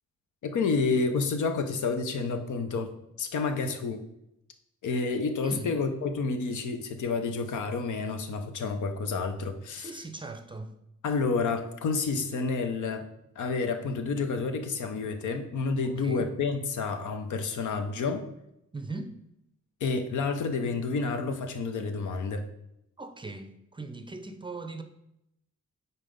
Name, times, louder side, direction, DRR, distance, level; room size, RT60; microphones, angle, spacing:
voice 1, 0.4-2.9 3.2-4.1 4.8-9.9 11.0-13.1 13.4-18.2 19.8-22.5, left 4 dB, 80° left, 7 dB, 0.8 m, -29 dB
voice 2, 5.4-5.7 9.8-10.8 15.8-16.3 18.7-19.2 23.0-24.8, right 3 dB, 15° right, 7 dB, 0.5 m, -39 dB
5.6 x 4.1 x 5.2 m, 0.83 s
cardioid pair, 110°, 30 cm